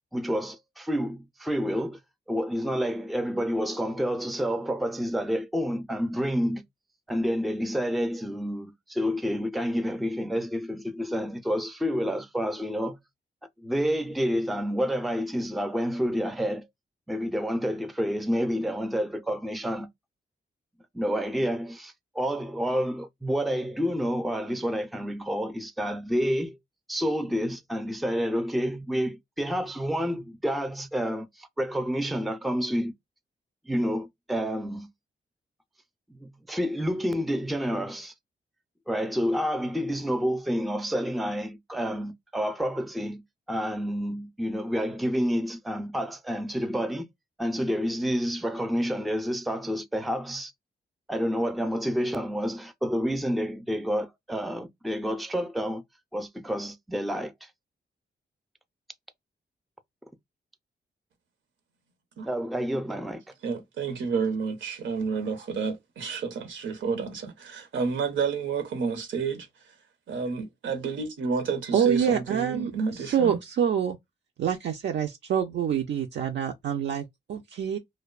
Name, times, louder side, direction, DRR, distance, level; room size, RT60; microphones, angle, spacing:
voice 1, 0.1-2.0 2.3-6.6 7.1-13.0 13.6-16.7 17.1-19.9 20.9-26.6 26.9-32.9 33.7-34.9 36.1-38.1 38.9-43.2 43.5-47.0 47.4-50.5 51.1-55.8 56.1-57.5 62.2-63.2, equal, ahead, 0.4 m, -29 dB
voice 2, 63.4-69.7 70.1-73.4, right 5 dB, 90° right, 0.8 m, -30 dB
voice 3, 71.7-72.7 73.1-74.0 74.4-77.8, right 8 dB, 70° right, 0.4 m, -26 dB
2.6 x 2.1 x 2.3 m
cardioid pair, 85°, 19 cm